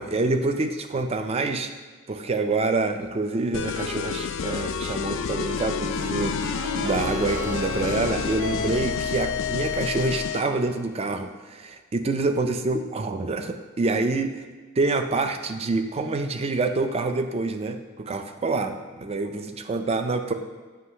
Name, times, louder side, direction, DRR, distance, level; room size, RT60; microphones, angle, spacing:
voice 1, 0.0-1.7 2.1-14.3 14.8-20.3, right 3 dB, 25° right, 7 dB, 0.4 m, -26 dB
sound 1, 3.5-10.5, left 6 dB, 55° left, 0.3 m, -29 dB
sound 2, 6.0-10.1, right 1 dB, 55° right, 0.7 m, -36 dB
7.7 x 3.1 x 5.5 m, 1.4 s
head